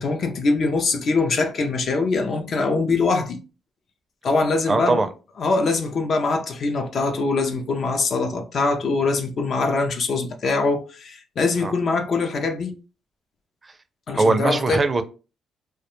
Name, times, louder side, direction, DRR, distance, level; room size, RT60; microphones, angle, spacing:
voice 1, 0.0-3.4 4.2-5.0 5.4-12.8 14.1-14.8, left 3 dB, 55° left, 0.4 m, -23 dB
voice 2, 4.7-5.1 11.6-11.7 14.1-15.0, right 3 dB, 25° right, 0.4 m, -20 dB
2.3 x 2.1 x 2.9 m
cardioid pair, 90°, 0 cm